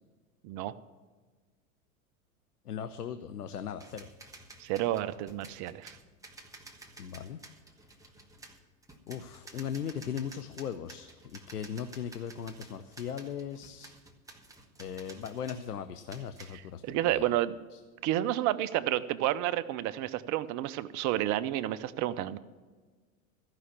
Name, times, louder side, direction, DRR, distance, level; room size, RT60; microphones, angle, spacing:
voice 1, 2.7-4.1 7.0-7.4 9.1-13.9 14.8-16.8 17.1-17.3 17.7-17.8, left 8 dB, 90° left, 10 dB, 0.7 m, -38 dB
sound 1, 3.8-15.7 16.1-16.6, right 2 dB, 5° right, 1.3 m, -52 dB
voice 2, 4.6-6.0 16.5-17.6 18.0-22.4, right 13 dB, 40° right, 13 dB, 0.7 m, -30 dB
14.0 x 5.7 x 8.4 m, 1.4 s
hypercardioid pair, 90°, 45 cm